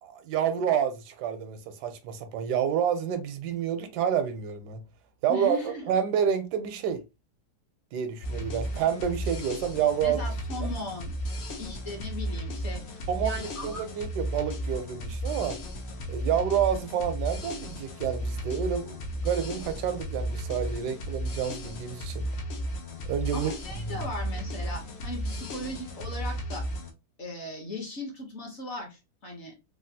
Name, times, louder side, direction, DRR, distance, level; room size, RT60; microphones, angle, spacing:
voice 1, 0.0-4.8 5.2-7.0 7.9-10.2 13.1-15.6 16.1-22.3 23.0-23.5 23.8-24.1, right 8 dB, 80° right, 1.1 m, -29 dB
voice 2, 5.3-5.9 10.0-11.2 11.6-13.8 23.3-26.7 27.2-29.5, left 1 dB, 50° left, 1.0 m, -38 dB
sound 1, 8.2-26.9, equal, 75° left, 0.6 m, -34 dB
3.3 x 2.3 x 2.6 m
omnidirectional pair, 1.8 m